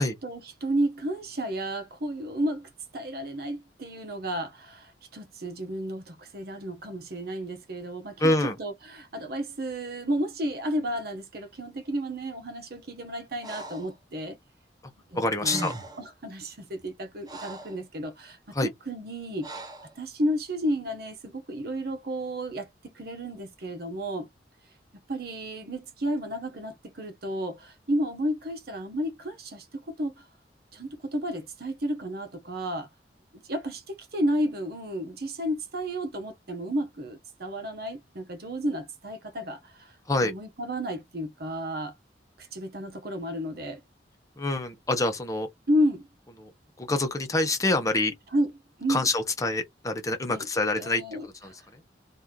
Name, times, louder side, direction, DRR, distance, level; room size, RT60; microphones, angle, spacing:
voice 1, 0.2-8.3 8.6-14.4 15.1-18.4 18.9-19.7 20.0-24.3 25.1-30.2 30.7-32.9 33.5-39.9 40.2-41.9 42.4-43.8 45.7-46.0 48.3-48.5 48.8-49.1 50.3-50.4 50.8-51.3, equal, 60° right, 0.9 m, -32 dB
voice 2, 8.2-8.6 15.1-15.7 18.5-18.7 40.1-40.3 44.4-45.5 46.4-46.5 46.8-48.1 48.9-51.8, left 2 dB, 20° left, 0.9 m, -26 dB
Breathing, 13.4-13.9 15.1-15.2 15.4-16.1 16.8-17.8 19.4-19.9, right 2 dB, 25° right, 0.7 m, -39 dB
3.0 x 2.6 x 3.7 m
head